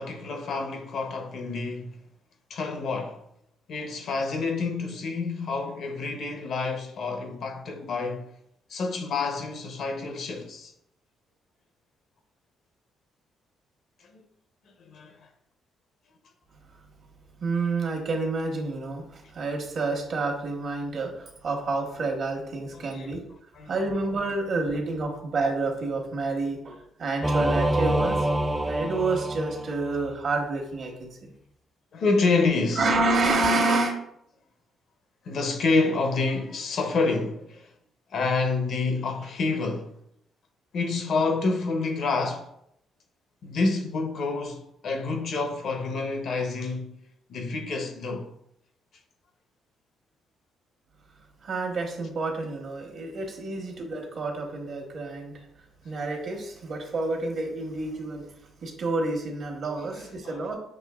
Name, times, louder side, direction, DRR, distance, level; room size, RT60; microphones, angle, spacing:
voice 1, 0.0-2.0 2.5-3.2 3.7-8.3 8.7-10.7 14.1-14.2 14.8-15.2 22.7-23.2 23.5-23.7 31.9-32.9 35.3-37.7 38.1-39.9 40.7-42.5 43.4-47.0 47.3-48.3 59.9-60.4, left 3 dB, 65° left, 0.6 m, -28 dB
voice 2, 17.4-23.2 23.7-28.3 28.6-31.3 32.7-33.9 51.4-55.3 55.8-58.2 58.6-60.6, right 3 dB, 60° right, 1.1 m, -28 dB
Singing / Musical instrument, 27.2-30.1, right 1 dB, 15° right, 0.4 m, -26 dB
6.1 x 2.7 x 2.3 m
cardioid pair, 90°, 0 cm